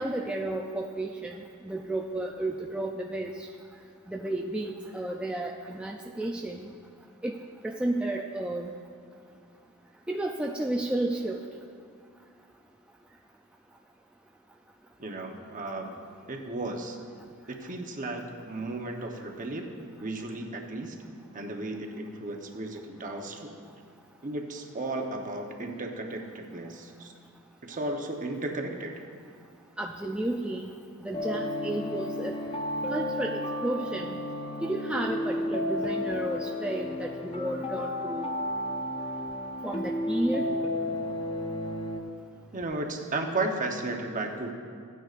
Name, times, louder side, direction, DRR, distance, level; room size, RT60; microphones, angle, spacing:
voice 1, 0.0-3.4 4.1-6.7 7.2-7.3 7.6-8.7 10.1-11.4 29.8-30.7 31.0-32.4 32.9-34.2 34.6-38.3 39.6-40.5, right 1 dB, 5° right, 0 dB, 0.4 m, -32 dB
voice 2, 15.0-15.9 16.3-17.0 17.5-19.7 20.0-21.0 21.3-23.5 24.2-27.1 27.6-29.0 42.5-44.5, right 2 dB, 40° right, 2 dB, 0.9 m, -34 dB
sound 1, 31.1-42.0, left 1 dB, 25° left, 0.8 m, -32 dB
16.0 x 9.2 x 2.5 m, 2.2 s
head